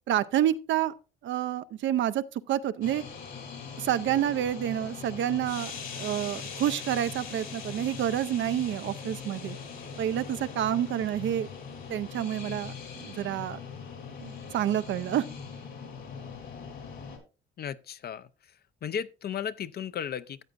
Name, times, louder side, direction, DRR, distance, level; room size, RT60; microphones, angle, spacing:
voice 1, 0.1-0.9 1.2-3.0 3.8-9.6 10.0-11.5 11.9-12.7 13.0-13.6 14.2-15.2, right 11 dB, 70° right, 0.6 m, -28 dB
sound 1, 2.8-17.2, left 6 dB, 75° left, 3.4 m, -41 dB
voice 2, 17.6-18.3 18.8-20.4, left 8 dB, 50° left, 0.6 m, -35 dB
13.5 x 7.9 x 2.5 m
cardioid pair, 90°, 20 cm